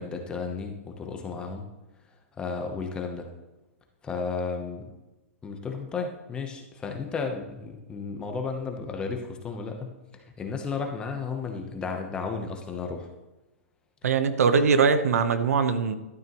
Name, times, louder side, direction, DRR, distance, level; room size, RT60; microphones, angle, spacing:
voice 1, 0.0-1.6 2.4-3.3 4.0-4.9 5.4-13.1, left 4 dB, 10° left, 4 dB, 0.9 m, -33 dB
voice 2, 14.0-16.0, right 5 dB, 90° right, 10 dB, 1.0 m, -22 dB
12.5 x 9.0 x 3.1 m, 1.1 s
hypercardioid pair, 165°, 8 cm